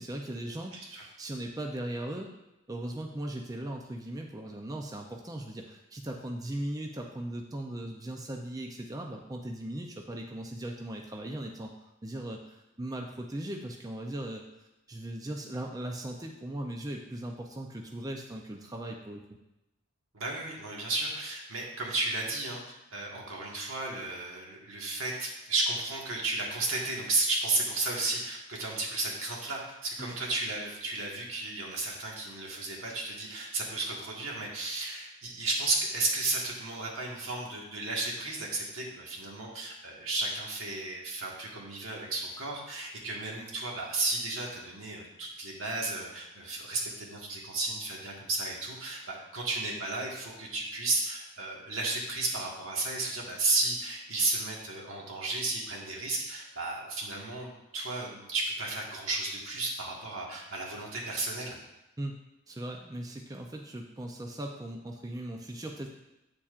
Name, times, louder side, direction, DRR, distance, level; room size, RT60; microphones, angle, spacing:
voice 1, 0.0-2.3 2.7-11.7 12.0-14.4 14.9-19.2 30.0-30.2 62.0-62.2 62.5-65.9, right 1 dB, 20° right, 1 dB, 0.5 m, -38 dB
voice 2, 0.7-1.0 20.1-22.6 22.9-61.6, right 2 dB, 80° right, -2 dB, 1.7 m, -33 dB
8.6 x 7.1 x 2.5 m, 0.93 s
head